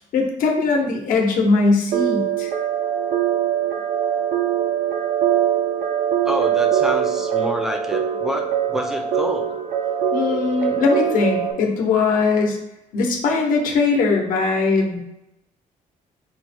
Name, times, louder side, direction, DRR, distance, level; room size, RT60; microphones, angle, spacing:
voice 1, 0.0-2.5 10.1-12.6 12.9-15.0, left 4 dB, 70° left, 1 dB, 0.9 m, -20 dB
sound 1, 1.9-11.5, right 9 dB, 90° right, 0.6 m, -22 dB
voice 2, 6.2-9.6, equal, 5° right, 4 dB, 0.5 m, -28 dB
4.5 x 2.2 x 4.2 m, 0.87 s
cardioid pair, 155°, 15 cm